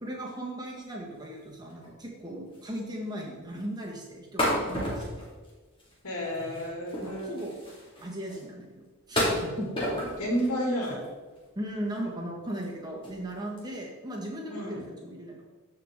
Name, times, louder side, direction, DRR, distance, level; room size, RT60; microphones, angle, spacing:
voice 1, 0.0-5.3 7.0-7.5 8.0-9.7 11.5-15.4, right 1 dB, 20° right, -2 dB, 1.6 m, -37 dB
sound 1, 1.7-1.9 2.2-2.3 2.5-2.9 3.1-3.2 4.4-5.9 6.2-8.4 9.1-10.5 10.8-11.4 11.9-12.0 12.5-12.7 13.0-13.2 13.6-13.8, left 1 dB, 25° left, 2.3 m, -32 dB
voice 2, 6.0-7.3 9.5-11.0 14.5-14.8, equal, 90° left, -2 dB, 2.6 m, -31 dB
14.0 x 4.8 x 3.7 m, 1.3 s
head